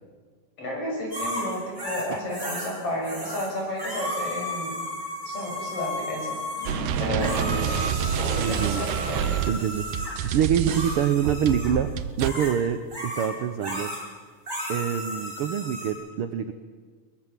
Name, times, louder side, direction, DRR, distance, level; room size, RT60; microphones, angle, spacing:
voice 1, 0.6-4.8 5.2-6.4 7.0-9.3, equal, 50° left, -1 dB, 7.6 m, -32 dB
sound 1, 1.1-2.7 3.0-3.5 3.8-10.2 10.7-11.7 12.2-12.5 12.9-13.3 13.6-14.0 14.5-15.9, left 1 dB, 15° right, 6.6 m, -34 dB
sound 2, 6.5-8.4, left 4 dB, 80° left, 8.0 m, -36 dB
sound 3, 6.6-12.3, right 9 dB, 90° right, 2.4 m, -28 dB
voice 2, 8.3-8.9 9.5-11.9 12.2-13.9 14.7-16.5, right 9 dB, 70° right, 9 dB, 1.4 m, -26 dB
22.0 x 21.0 x 7.5 m, 1.5 s
omnidirectional pair, 3.5 m